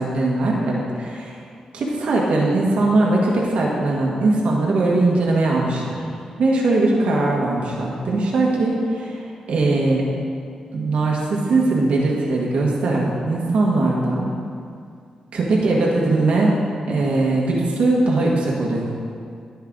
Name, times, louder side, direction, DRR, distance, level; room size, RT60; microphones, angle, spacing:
voice 1, 0.0-1.4 1.7-6.0 6.4-9.2 9.5-10.0 10.7-14.3 15.3-16.5 16.9-18.9, right 2 dB, 75° right, -3 dB, 1.7 m, -20 dB
16.5 x 5.6 x 3.9 m, 2.3 s
cardioid pair, 100°, 2 cm